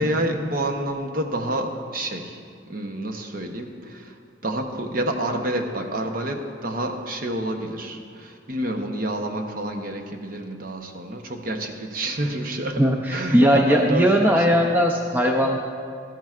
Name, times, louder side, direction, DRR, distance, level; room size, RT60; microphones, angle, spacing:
voice 1, 0.0-2.4 2.7-14.8, right 1 dB, 45° right, 4 dB, 0.8 m, -29 dB
voice 2, 12.8-15.6, equal, 10° right, 1 dB, 0.5 m, -19 dB
13.5 x 13.0 x 2.4 m, 2.3 s
head